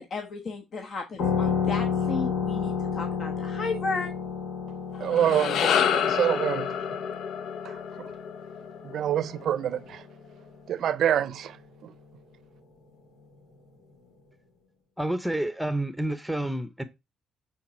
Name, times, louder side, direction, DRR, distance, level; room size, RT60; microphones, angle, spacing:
voice 1, 0.0-4.1, left 3 dB, 50° left, 1.2 m, -34 dB
sound 1, 1.2-10.4, left 6 dB, 85° left, 2.3 m, -32 dB
sound 2, 5.0-9.4, left 8 dB, 70° left, 0.7 m, -28 dB
voice 2, 5.0-7.0 7.6-8.1 8.8-10.1 10.7-11.6 11.8-11.9, right 10 dB, 65° right, 0.6 m, -27 dB
voice 3, 15.0-16.8, right 1 dB, 5° right, 0.8 m, -29 dB
8.6 x 3.9 x 4.4 m
cardioid pair, 90°, 0 cm